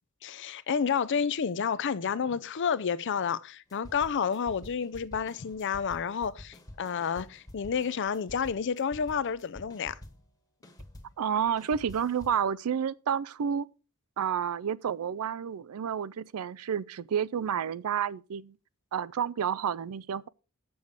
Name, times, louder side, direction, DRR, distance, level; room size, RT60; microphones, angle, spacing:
voice 1, 0.2-10.0, left 6 dB, 55° left, 0.5 m, -30 dB
sound 1, 3.7-10.3 10.6-12.5, left 1 dB, 15° left, 1.3 m, -49 dB
voice 2, 11.2-13.7 14.2-18.6 18.9-20.3, right 8 dB, 75° right, 0.4 m, -30 dB
8.0 x 7.0 x 4.9 m
head